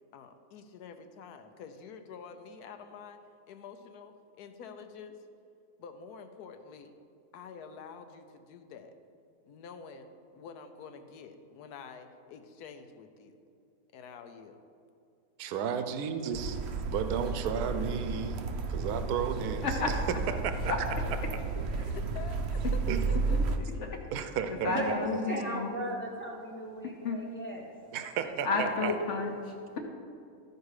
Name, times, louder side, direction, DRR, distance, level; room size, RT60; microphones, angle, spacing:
voice 1, 0.1-3.2 3.5-5.2 5.8-6.9 7.3-8.9 9.5-10.1 10.3-13.3 13.9-14.6 21.8-23.4, left 6 dB, 85° left, 8 dB, 1.2 m, -47 dB
voice 2, 15.4-16.6 16.8-19.7 20.4-20.7 22.9-23.0 24.1-25.0 27.9-28.9, right 7 dB, 80° right, 9 dB, 1.1 m, -33 dB
sound 1, 16.3-23.6, right 4 dB, 60° right, 0.7 m, -32 dB
voice 3, 23.8-25.8 27.0-27.2 28.4-29.8, left 4 dB, 55° left, 3 dB, 1.0 m, -32 dB
voice 4, 24.7-27.7 28.2-28.6, right 1 dB, 10° left, -1 dB, 0.6 m, -37 dB
12.5 x 4.7 x 4.8 m, 2.4 s
omnidirectional pair, 1.6 m